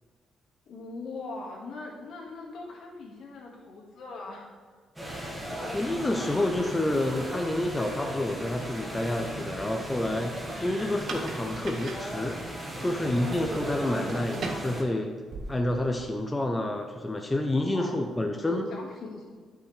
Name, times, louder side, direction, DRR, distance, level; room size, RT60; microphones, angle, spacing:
voice 1, 0.7-4.5 12.7-13.3 17.7-18.1 18.3-19.2, left 3 dB, 70° left, -3 dB, 1.8 m, -41 dB
sound 1, 5.0-14.8, equal, 10° right, 1.7 m, -37 dB
voice 2, 5.7-12.4 12.8-15.2 15.5-18.6, left 1 dB, 15° left, 3 dB, 0.6 m, -29 dB
sound 2, 8.8-16.2, right 3 dB, 60° right, 0.9 m, -42 dB
9.1 x 5.6 x 3.4 m, 1.5 s
cardioid pair, 90°, 0 cm